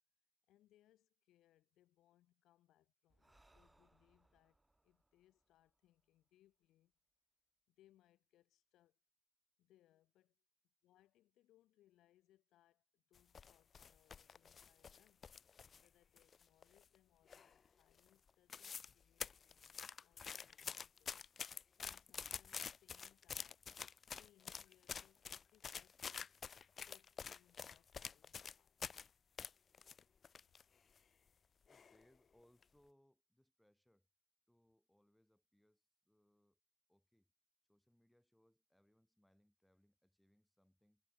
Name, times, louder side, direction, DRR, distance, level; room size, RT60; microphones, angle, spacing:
voice 1, 0.5-6.9 7.7-9.0 9.6-15.3 15.8-21.1 21.8-23.7 24.2-26.3 26.8-28.8, left 14 dB, 85° left, 5.8 m, -74 dB
Breathing, 3.1-6.6, right 2 dB, 15° right, 3.9 m, -75 dB
sound 1, 13.2-15.9 16.2-17.0 17.3-17.7 18.0-18.1 18.3-18.9 19.2-29.1 29.4-30.6 31.0-31.1 31.7-32.0 32.4-32.6, left 6 dB, 45° left, 0.3 m, -48 dB
voice 2, 31.7-34.1 34.5-36.6 36.9-37.3 37.7-41.0, equal, 5° left, 6.1 m, -75 dB
cardioid pair, 90°, 0 cm